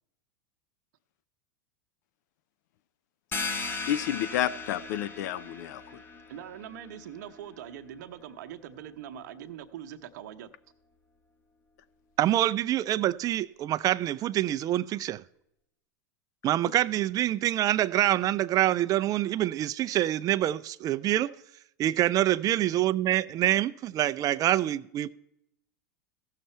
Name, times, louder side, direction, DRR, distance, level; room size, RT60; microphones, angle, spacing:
sound 1, 3.3-8.7, left 3 dB, 20° left, 1.3 m, -38 dB
voice 1, 3.9-6.0, left 12 dB, 65° left, 0.5 m, -30 dB
voice 2, 6.3-10.5, right 10 dB, 65° right, 0.9 m, -42 dB
voice 3, 12.2-15.2 16.4-21.3 21.8-25.1, right 13 dB, 35° right, 0.4 m, -26 dB
15.5 x 6.7 x 4.4 m
hypercardioid pair, 95°, 10 cm